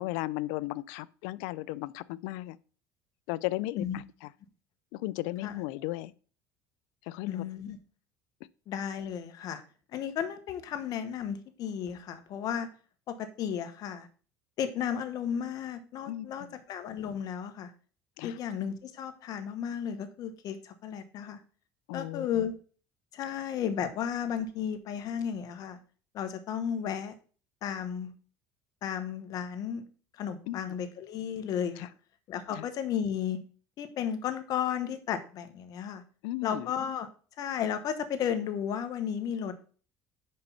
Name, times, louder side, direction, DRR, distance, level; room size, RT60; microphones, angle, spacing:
voice 1, 0.0-2.6 3.3-4.3 4.9-6.1 7.1-7.4 16.1-16.5 18.2-18.4 21.9-22.3 30.5-30.6 31.8-31.9 32.5-32.6 36.2-36.7, left 18 dB, 85° left, 0.4 m, -35 dB
voice 2, 7.3-7.8 8.7-9.6 9.9-12.7 13.1-14.1 14.6-17.7 18.2-21.4 21.9-22.5 23.1-25.8 26.1-27.1 27.6-28.1 28.8-29.8 30.2-31.9 32.3-33.4 33.8-36.0 36.4-37.1 37.4-39.6, left 8 dB, 55° left, 1.2 m, -34 dB
5.4 x 5.3 x 5.7 m
supercardioid pair, 110°, 7 cm